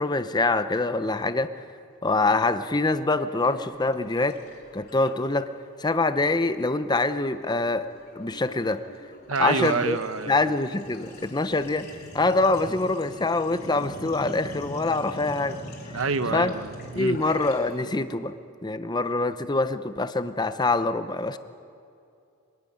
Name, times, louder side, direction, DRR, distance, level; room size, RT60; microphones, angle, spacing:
voice 1, 0.0-1.5 2.0-4.4 4.7-5.5 5.8-7.9 8.2-8.8 9.4-10.0 10.3-15.6 16.3-16.5 16.9-18.3 18.6-21.4, left 2 dB, 20° left, 11 dB, 0.7 m, -25 dB
Sink (filling or washing), 3.4-5.6 5.9-6.2 6.4-17.9, left 1 dB, 50° left, 3.3 m, -43 dB
voice 2, 9.3-10.5 15.9-17.2, right 4 dB, 70° right, 12 dB, 0.9 m, -27 dB
24.5 x 11.5 x 10.0 m, 2.6 s
head